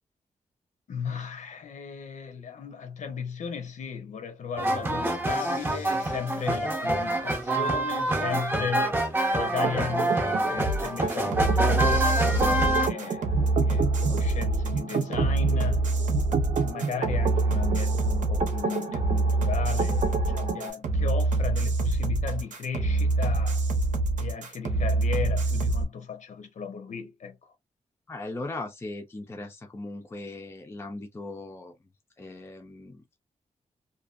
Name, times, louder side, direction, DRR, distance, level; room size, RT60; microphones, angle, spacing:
voice 1, 0.9-9.0 9.3-15.9 16.6-23.6 24.2-27.4, left 6 dB, 70° left, 0.7 m, -36 dB
sound 1, 4.6-12.9, right 1 dB, 15° right, 0.7 m, -26 dB
sound 2, 9.6-20.7, right 5 dB, 55° right, 0.6 m, -32 dB
sound 3, 10.6-25.8, right 2 dB, 85° right, 0.8 m, -25 dB
voice 2, 28.1-31.7 32.2-33.2, left 2 dB, 20° left, 0.5 m, -38 dB
2.6 x 2.3 x 2.4 m
wide cardioid pair, 165°, 13 cm